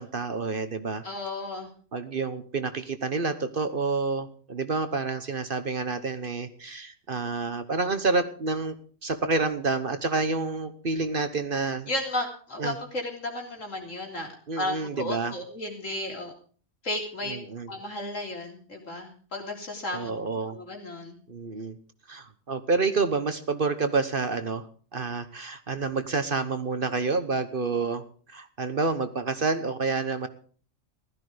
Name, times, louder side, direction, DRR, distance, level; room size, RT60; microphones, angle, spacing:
voice 1, 0.0-1.0 1.9-8.8 9.0-11.9 12.6-12.8 14.5-15.3 17.3-17.7 19.9-20.6 21.3-21.8 22.1-24.7 24.9-30.3, right 4 dB, 45° right, 10 dB, 1.2 m, -28 dB
voice 2, 1.0-1.7 11.9-14.3 14.6-16.3 16.8-17.4 17.7-20.1 20.5-21.2, left 1 dB, 75° left, 1 dB, 3.8 m, -33 dB
15.5 x 13.0 x 5.0 m, 0.42 s
omnidirectional pair, 1.3 m